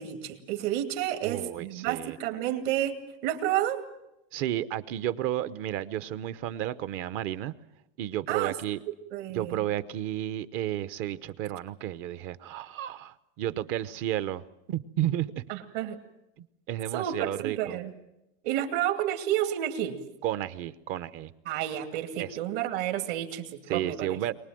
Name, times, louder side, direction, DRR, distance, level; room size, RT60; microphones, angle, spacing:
voice 1, 0.0-3.0 3.2-3.8 8.3-8.5 9.1-9.6 15.5-16.0 16.9-17.9 18.4-20.0 21.5-24.2, right 12 dB, 65° right, 6 dB, 2.6 m, -30 dB
voice 2, 1.2-2.2 4.3-7.5 8.0-8.8 9.3-14.4 14.7-15.4 16.4-17.8 20.2-21.3 22.2-22.3 23.7-24.3, right 12 dB, 45° right, 14 dB, 0.9 m, -32 dB
23.5 x 20.0 x 7.7 m, 0.89 s
supercardioid pair, 160°, 30 cm